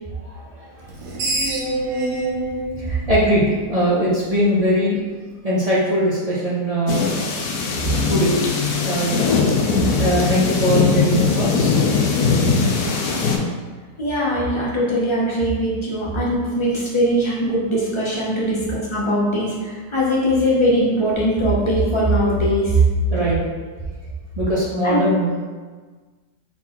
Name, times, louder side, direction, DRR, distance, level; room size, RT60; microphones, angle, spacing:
voice 1, 0.1-0.9 2.8-5.0 5.4-7.1 7.8-9.3 10.0-11.8 23.1-23.4 24.4-25.3, equal, 45° right, -7 dB, 0.5 m, -21 dB
Screech, 0.8-4.1, right 2 dB, 70° right, 1.2 m, -26 dB
sound 1, 6.9-13.4, left 4 dB, 70° left, 1.1 m, -20 dB
voice 2, 14.0-22.8 24.8-25.0, equal, 30° left, -5 dB, 0.5 m, -20 dB
4.0 x 3.9 x 3.0 m, 1.4 s
omnidirectional pair, 1.8 m